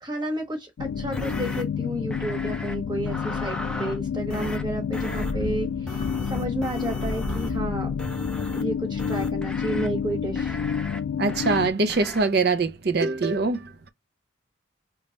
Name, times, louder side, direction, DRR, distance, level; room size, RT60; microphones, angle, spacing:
voice 1, 0.0-7.9 8.5-10.6, right 1 dB, 20° right, 1.1 m, -31 dB
sound 1, 0.8-11.7, left 7 dB, 75° left, 0.3 m, -29 dB
sound 2, 1.1-1.6 2.1-2.7 3.1-4.0 4.3-4.6 4.9-5.3 5.9-7.6 8.0-8.6 9.0-9.9 10.4-11.0 11.3-11.6 11.9-12.2, left 1 dB, 5° left, 0.4 m, -36 dB
sound 3, 5.0-9.6 9.9-10.0, equal, 30° left, 1.1 m, -37 dB
voice 2, 11.2-13.7, right 3 dB, 55° right, 0.5 m, -23 dB
3.1 x 2.3 x 3.9 m
head